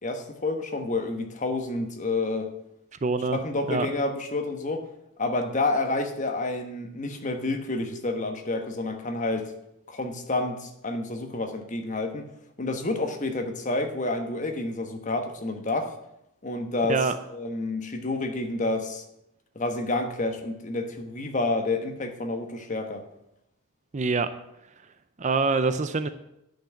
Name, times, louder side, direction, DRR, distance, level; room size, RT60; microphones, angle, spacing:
voice 1, 0.0-2.5 3.3-4.8 5.2-9.5 9.9-12.3 12.6-15.9 16.4-17.1 17.3-19.0 19.5-23.0, left 2 dB, 35° left, 5 dB, 1.2 m, -29 dB
voice 2, 3.0-3.4 3.7-3.9 16.9-17.2 23.9-24.3 25.2-26.1, right 4 dB, 30° right, 11 dB, 0.5 m, -24 dB
10.0 x 6.0 x 8.4 m, 0.85 s
head